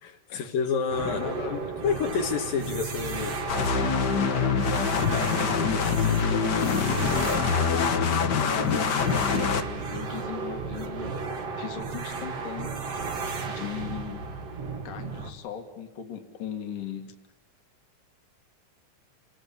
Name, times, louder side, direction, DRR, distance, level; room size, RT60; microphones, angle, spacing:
voice 1, 0.0-3.4, left 6 dB, 90° left, 2 dB, 3.7 m, -29 dB
sound 1, 0.9-15.3, right 4 dB, 50° right, 2.9 m, -34 dB
voice 2, 1.0-1.7 5.3-11.2 11.6-12.7 13.5-14.2 14.9-17.1, left 7 dB, 75° left, 5 dB, 3.6 m, -38 dB
sound 2, 3.5-9.6, left 6 dB, 50° left, 1.3 m, -25 dB
29.0 x 20.5 x 8.7 m, 0.99 s
omnidirectional pair, 3.8 m